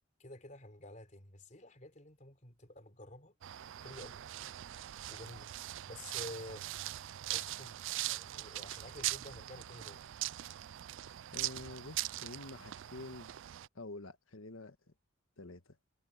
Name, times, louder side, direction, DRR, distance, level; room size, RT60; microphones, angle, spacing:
voice 1, 0.2-3.3 3.8-4.3 5.1-5.5 5.8-7.0 7.3-7.8 8.1-10.0, left 1 dB, 35° left, 4.0 m, -50 dB
sound 1, 3.4-13.7, right 15 dB, 65° right, 0.3 m, -41 dB
voice 2, 11.3-13.4 13.7-14.8 15.4-15.8, left 2 dB, 80° left, 1.5 m, -48 dB
head